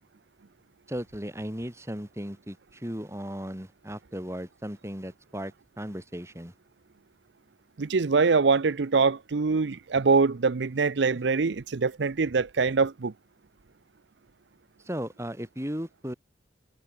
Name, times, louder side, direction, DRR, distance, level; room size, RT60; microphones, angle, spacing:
voice 1, 0.9-6.5 14.9-16.1, equal, 15° right, 4.3 m, -36 dB
voice 2, 7.8-13.1, right 4 dB, 75° right, 0.6 m, -24 dB
head